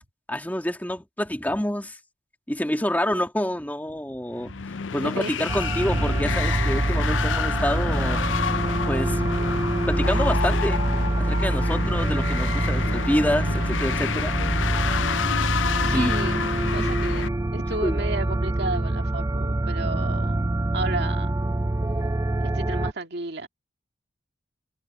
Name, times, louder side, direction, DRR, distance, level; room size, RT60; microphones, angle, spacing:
voice 1, 0.3-2.0 2.5-4.5 4.9-8.2 8.9-9.2 9.9-10.8 11.2-14.3 15.9-16.1 16.8-16.9 17.8-18.0, left 1 dB, 10° left, 2.6 m, -27 dB
voice 2, 2.9-3.3 4.4-4.7 5.0-5.5 15.8-16.4 16.7-20.5 20.7-21.4 22.4-23.5, right 2 dB, 60° right, 2.3 m, -33 dB
sound 1, 4.4-17.3, left 7 dB, 85° left, 0.6 m, -29 dB
sound 2, 5.5-22.9, right 1 dB, 15° right, 0.5 m, -25 dB
head